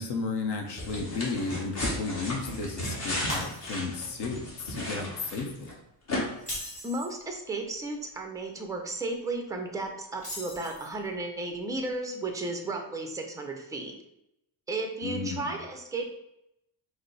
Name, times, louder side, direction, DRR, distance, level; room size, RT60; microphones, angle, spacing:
voice 1, 0.0-5.7 15.0-15.5, left 4 dB, 60° left, 4 dB, 0.8 m, -33 dB
sound 1, 0.8-5.7 6.1-6.2, left 1 dB, 35° left, 1.3 m, -34 dB
Shatter, 3.3-4.1 4.5-4.7 6.3-7.2 10.2-11.1, equal, 15° left, 1.6 m, -39 dB
voice 2, 6.8-13.9 14.7-16.1, right 2 dB, 10° right, 3 dB, 0.4 m, -34 dB
5.0 x 2.0 x 4.5 m, 0.83 s
cardioid pair, 160°, 45 cm